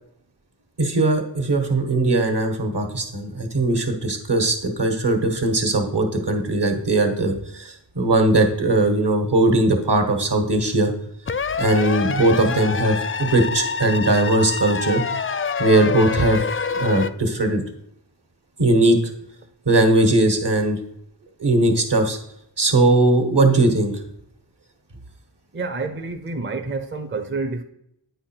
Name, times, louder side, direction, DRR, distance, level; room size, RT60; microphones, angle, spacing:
voice 1, 0.8-10.9 11.6-15.0 15.6-16.4 16.7-17.6 18.6-19.0 19.6-20.8 21.4-22.2 22.6-23.9, right 2 dB, 60° right, 1.5 m, -19 dB
sound 1, 11.3-17.1, left 5 dB, 30° left, 0.4 m, -26 dB
voice 2, 25.5-27.6, right 3 dB, 25° right, 0.6 m, -28 dB
9.1 x 4.7 x 4.5 m
wide cardioid pair, 45°, 45 cm